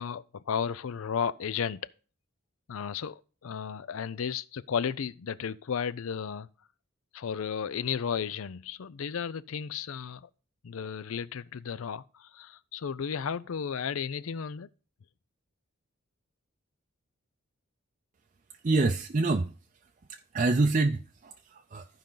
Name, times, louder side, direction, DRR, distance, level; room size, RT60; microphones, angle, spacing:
voice 1, 0.0-1.9 2.7-6.5 7.1-10.3 10.6-14.7, left 7 dB, 75° left, 0.5 m, -34 dB
voice 2, 18.6-19.5 20.1-21.9, right 3 dB, 35° right, 0.5 m, -27 dB
14.0 x 5.1 x 3.8 m
head